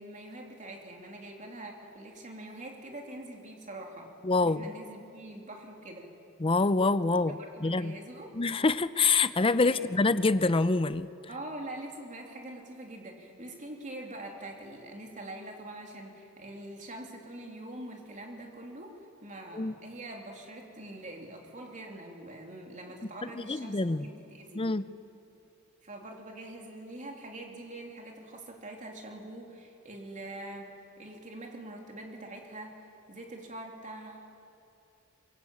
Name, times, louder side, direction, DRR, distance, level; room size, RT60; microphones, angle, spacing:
voice 1, 0.0-4.1 4.4-6.1 7.4-8.3 9.6-9.9 11.3-24.7 25.8-34.2, right 1 dB, 35° right, 1 dB, 3.3 m, -44 dB
voice 2, 4.2-4.7 6.4-7.3 7.6-7.9 8.4-11.1 19.5-19.7 23.5-24.1 24.5-24.8, left 3 dB, 25° left, 14 dB, 0.6 m, -26 dB
23.5 x 22.5 x 8.6 m, 2.7 s
head